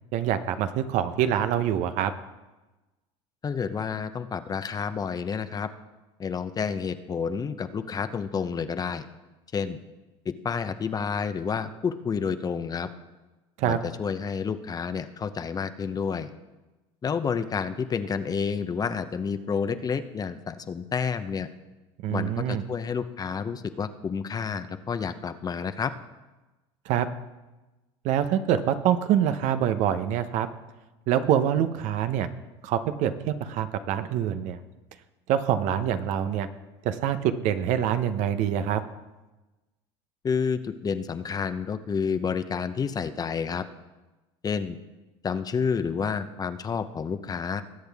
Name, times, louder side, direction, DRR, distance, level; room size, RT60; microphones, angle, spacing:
voice 1, 0.1-2.1 13.6-13.8 22.0-22.6 26.9-27.1 28.0-30.5 31.1-32.3 32.6-34.6 35.3-36.5 36.8-38.8, right 10 dB, 65° right, 10 dB, 0.9 m, -25 dB
voice 2, 3.4-5.7 6.2-9.1 9.5-9.8 10.2-12.9 13.6-16.3 17.0-21.5 22.1-25.9 40.2-43.6 44.4-44.8 45.2-47.6, left 6 dB, 30° left, 11 dB, 0.8 m, -29 dB
20.5 x 8.1 x 3.5 m, 1.1 s
supercardioid pair, 95°, 13 cm